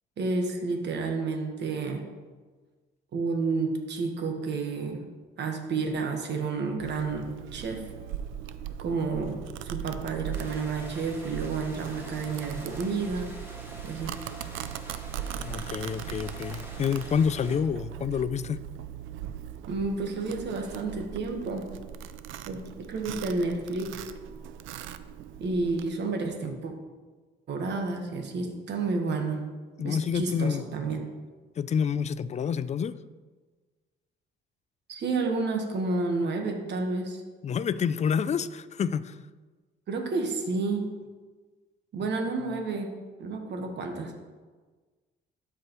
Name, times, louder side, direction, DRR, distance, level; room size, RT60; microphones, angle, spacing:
voice 1, 0.2-2.0 3.1-5.0 5.4-7.8 8.8-13.3 13.8-14.2 19.7-21.7 22.5-24.1 25.4-26.7 27.5-29.5 29.8-31.0 34.9-37.2 39.9-40.8 41.9-42.9 43.2-44.2, right 3 dB, 60° right, 1.3 m, -30 dB
Domestic sounds home sounds, 6.8-25.9, right 10 dB, 85° right, 0.4 m, -39 dB
sound 1, 10.3-17.6, equal, 10° right, 1.8 m, -46 dB
voice 2, 15.4-18.6 29.8-30.6 31.6-32.9 37.4-39.2 42.0-42.1, left 7 dB, 35° left, 0.3 m, -28 dB
12.5 x 4.8 x 3.0 m
cardioid pair, 90°, 20 cm